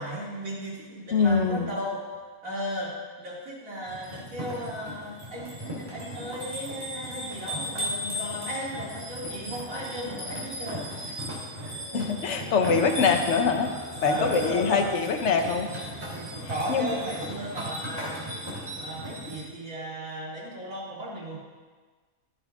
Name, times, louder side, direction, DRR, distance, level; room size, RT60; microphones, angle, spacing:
voice 1, 0.0-2.0 2.4-11.2 11.6-12.0 12.9-13.1 14.0-15.0 16.0-18.4 18.8-21.4, equal, 65° right, -6 dB, 3.2 m, -35 dB
voice 2, 1.1-1.7 11.9-13.7 14.0-15.7 16.7-16.9, left 5 dB, 55° left, 5 dB, 1.2 m, -24 dB
sound 1, 3.9-19.4, equal, 20° right, 2.9 m, -36 dB
13.0 x 10.0 x 3.6 m, 1.4 s
omnidirectional pair, 1.5 m